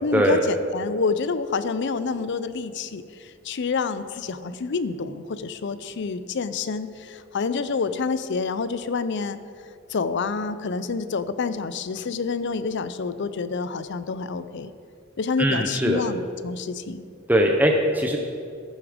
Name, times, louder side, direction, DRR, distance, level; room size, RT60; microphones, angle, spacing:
voice 1, 0.0-9.4 9.9-14.7 15.2-17.0, left 4 dB, 60° left, 13 dB, 0.5 m, -28 dB
voice 2, 15.4-16.0 17.3-18.2, equal, 10° right, 1 dB, 0.7 m, -20 dB
14.5 x 7.1 x 5.0 m, 2.3 s
head